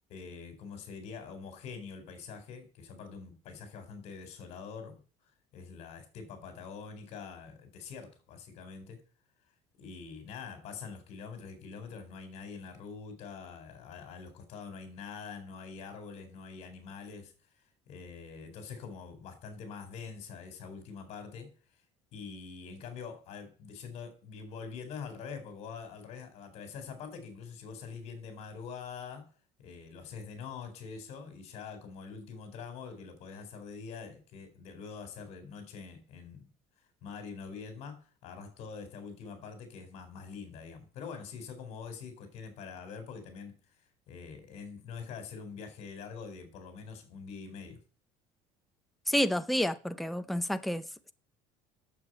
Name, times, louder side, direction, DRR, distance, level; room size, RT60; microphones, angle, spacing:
voice 1, 0.1-5.0 5.5-9.0 9.8-17.3 17.9-21.5 22.1-29.3 29.6-36.5 37.0-43.6 44.1-47.8, left 5 dB, 50° left, 4.4 m, -44 dB
voice 2, 49.1-50.8, equal, ahead, 0.5 m, -29 dB
9.5 x 7.5 x 8.0 m
cardioid pair, 175°, 14 cm